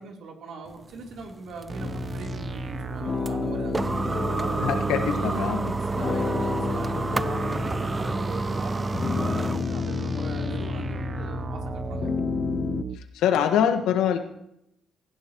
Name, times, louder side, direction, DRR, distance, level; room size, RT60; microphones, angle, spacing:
voice 1, 0.0-3.9 4.3-4.7 5.1-5.5 5.9-12.1, right 4 dB, 75° right, 0 dB, 3.5 m, -40 dB
sound 1, 0.7-9.7, right 2 dB, 20° right, 0.4 m, -30 dB
sound 2, 1.7-13.0, right 5 dB, 35° right, 0.8 m, -35 dB
sound 3, 1.8-12.8, left 6 dB, 45° left, 0.4 m, -32 dB
voice 2, 4.6-5.7 12.9-14.2, left 9 dB, 90° left, 7 dB, 1.4 m, -24 dB
18.0 x 15.5 x 3.1 m, 0.79 s
cardioid pair, 90°, 0 cm